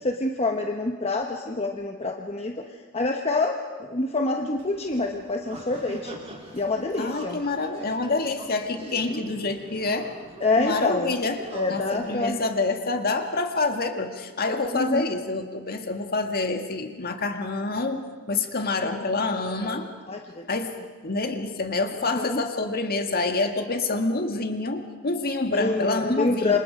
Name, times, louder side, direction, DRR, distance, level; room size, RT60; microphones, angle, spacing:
voice 1, 0.0-2.6 2.9-3.6 3.9-6.2 6.5-7.4 9.1-9.2 10.4-11.1 11.5-12.4 14.7-15.1 18.8-19.0 19.3-19.8 20.1-20.4 22.1-22.4 25.5-26.6, left 2 dB, 30° left, 2 dB, 1.1 m, -26 dB
sound 1, 4.5-12.2, right 1 dB, 30° right, 4.3 m, -43 dB
voice 2, 6.8-10.1 10.6-19.9 20.5-20.7 21.0-26.6, left 3 dB, 45° left, 5 dB, 1.9 m, -27 dB
28.5 x 26.0 x 5.2 m, 1.4 s
head